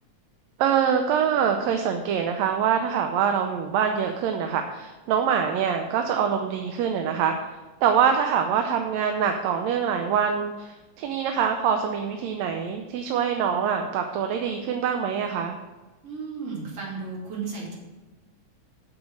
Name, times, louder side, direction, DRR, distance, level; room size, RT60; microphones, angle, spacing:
voice 1, 0.6-7.4 7.8-15.6, right 7 dB, 75° right, 5 dB, 1.8 m, -24 dB
voice 2, 16.0-17.7, right 4 dB, 55° right, -4 dB, 3.6 m, -34 dB
8.3 x 6.4 x 6.2 m, 1.2 s
omnidirectional pair, 3.3 m